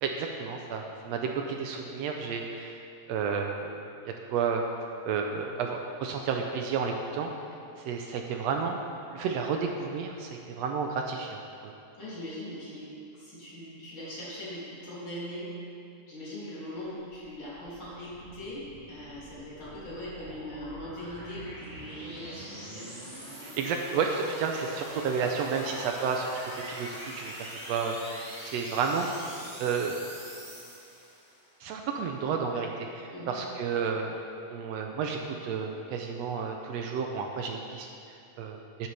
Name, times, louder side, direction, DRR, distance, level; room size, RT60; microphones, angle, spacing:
voice 1, 0.0-2.8 3.1-3.7 4.0-4.6 5.0-7.3 7.8-8.8 9.1-11.7 23.4-26.3 26.7-29.1 29.6-30.1 31.6-34.2 34.5-38.9, right 5 dB, 75° right, 3 dB, 1.6 m, -31 dB
voice 2, 12.0-15.5 16.1-23.0 33.1-33.4, left 1 dB, 45° left, -9 dB, 3.5 m, -41 dB
sound 1, 17.1-31.5, equal, 20° right, 1.4 m, -43 dB
12.0 x 9.5 x 3.4 m, 2.5 s
omnidirectional pair, 3.3 m